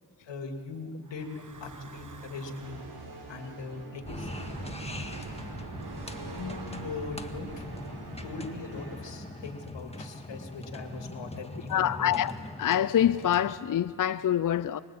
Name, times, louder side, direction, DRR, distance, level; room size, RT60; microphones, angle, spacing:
voice 1, 0.3-2.8 3.3-4.3 6.3-7.7 8.2-12.3, left 4 dB, 85° left, 2.7 m, -40 dB
Breathing / Wind, 1.1-3.0 3.9-9.3, right 5 dB, 45° right, 1.5 m, -46 dB
sound 1, 1.1-9.8, right 2 dB, 60° right, 5.3 m, -46 dB
sound 2, 4.0-13.6, left 2 dB, 15° left, 1.8 m, -42 dB
voice 2, 11.7-12.3 12.6-14.8, left 10 dB, 50° left, 0.6 m, -25 dB
24.5 x 22.5 x 8.7 m
cardioid pair, 65°, 43 cm